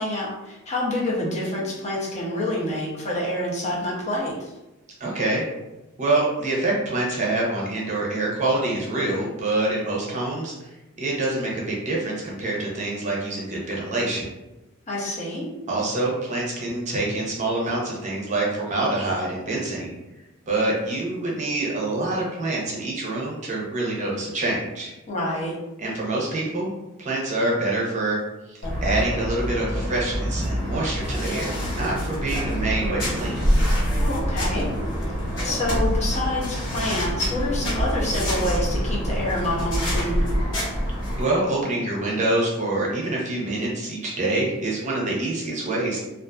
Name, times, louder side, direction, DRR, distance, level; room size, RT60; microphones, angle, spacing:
voice 1, 0.0-4.5 14.9-15.5 25.1-25.5 34.0-34.7 35.4-40.3, left 1 dB, 30° left, -4 dB, 0.6 m, -27 dB
voice 2, 5.0-5.4 6.0-10.7 11.0-14.3 15.7-19.9 20.5-24.9 25.8-26.7 27.0-28.2 28.5-33.4 41.2-46.0, right 2 dB, 35° right, -3 dB, 0.6 m, -26 dB
sound 1, 28.6-41.2, equal, 55° left, 1.2 m, -26 dB
2.4 x 2.4 x 2.2 m, 0.99 s
head